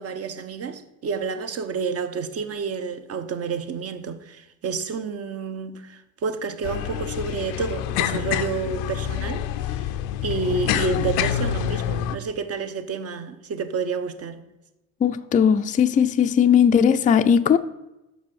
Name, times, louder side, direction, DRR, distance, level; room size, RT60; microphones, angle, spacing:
voice 1, 0.0-9.5 9.8-9.9 10.2-14.4, right 5 dB, 45° right, 0.8 m, -29 dB
sound 1, 6.6-12.2, left 10 dB, 90° left, 0.5 m, -27 dB
voice 2, 15.0-17.6, left 7 dB, 25° left, 0.4 m, -18 dB
6.3 x 5.2 x 6.3 m
supercardioid pair, 85°, 34 cm